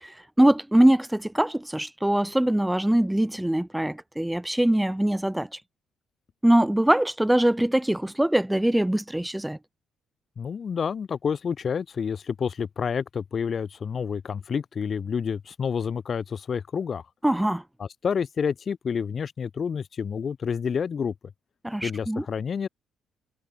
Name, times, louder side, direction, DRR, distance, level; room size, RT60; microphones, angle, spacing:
voice 1, 0.0-5.5 6.4-9.6 17.2-17.6 21.6-22.2, right 1 dB, 5° right, 0.6 m, -22 dB
voice 2, 10.4-17.0 17.8-21.1 21.8-22.7, left 6 dB, 45° left, 2.8 m, -29 dB
cardioid pair, 90°, 0 cm